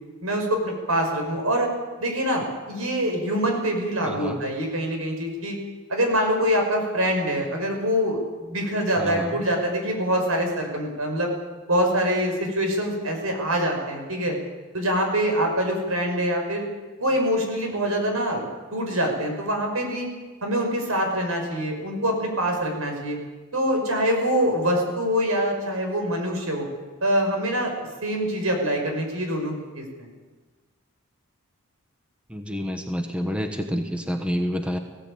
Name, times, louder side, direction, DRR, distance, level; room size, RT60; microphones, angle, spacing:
voice 1, 0.2-1.7 2.0-5.6 5.9-11.3 11.7-14.4 14.7-16.7 17.0-18.5 18.7-20.1 20.4-23.2 23.5-26.7 27.0-27.7 28.0-30.1, equal, 85° right, 3 dB, 5.8 m, -24 dB
voice 2, 4.0-4.4 8.9-9.4 32.3-34.8, equal, 5° right, 5 dB, 1.2 m, -28 dB
19.5 x 16.0 x 8.7 m, 1.3 s
head